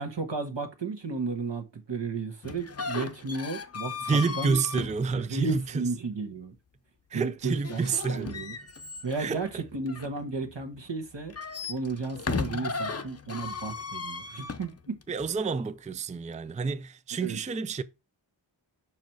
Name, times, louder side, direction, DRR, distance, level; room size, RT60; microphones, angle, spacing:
voice 1, 0.0-4.8 5.1-6.5 7.1-8.5 9.0-11.3 11.7-15.0 17.2-17.4, right 4 dB, 60° right, 1.4 m, -34 dB
sound 1, 2.4-5.8 7.6-10.6 11.2-15.3, left 4 dB, 30° left, 0.7 m, -36 dB
voice 2, 4.1-5.8 7.1-8.3 9.2-9.6 15.1-17.8, right 4 dB, 15° right, 0.4 m, -29 dB
5.9 x 4.8 x 4.5 m
wide cardioid pair, 65°, 48 cm